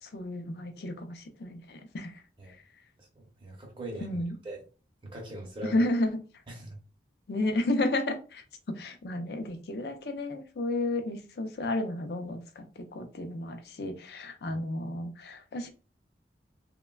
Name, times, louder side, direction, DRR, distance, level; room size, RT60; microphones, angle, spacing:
voice 1, 0.0-2.2 4.0-4.3 5.6-6.2 7.3-15.7, left 1 dB, 60° left, 7 dB, 0.4 m, -32 dB
voice 2, 3.0-4.6 5.0-5.8 6.5-6.8 14.5-14.6, right 1 dB, 30° right, 0 dB, 0.7 m, -42 dB
3.1 x 2.1 x 2.2 m, 0.35 s
head